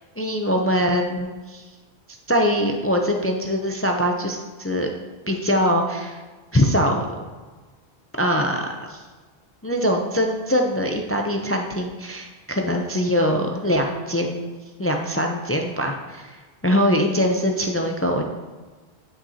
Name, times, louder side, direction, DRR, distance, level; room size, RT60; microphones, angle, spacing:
voice 1, 0.2-1.6 2.3-4.9 5.3-6.2 6.5-7.0 8.2-9.0 9.6-14.5 14.8-18.2, equal, 20° left, 3 dB, 0.3 m, -22 dB
10.5 x 5.9 x 2.8 m, 1.3 s
omnidirectional pair, 1.1 m